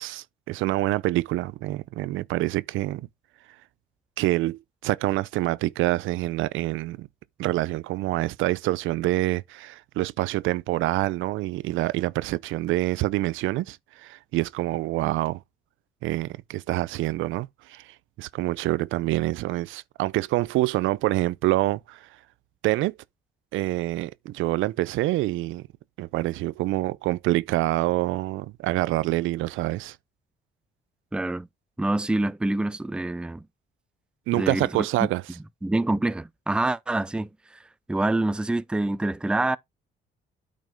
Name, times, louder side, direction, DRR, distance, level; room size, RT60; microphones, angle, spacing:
voice 1, 0.0-3.1 4.2-7.1 7.4-15.4 16.0-22.1 22.6-22.9 23.5-25.6 26.0-30.0 34.3-35.2, right 17 dB, 85° right, 0.4 m, -26 dB
voice 2, 31.1-31.5 31.8-33.4 34.3-34.9 35.6-37.3 37.9-39.6, right 2 dB, 5° right, 0.4 m, -26 dB
9.0 x 5.2 x 3.4 m
cardioid pair, 90°, 20 cm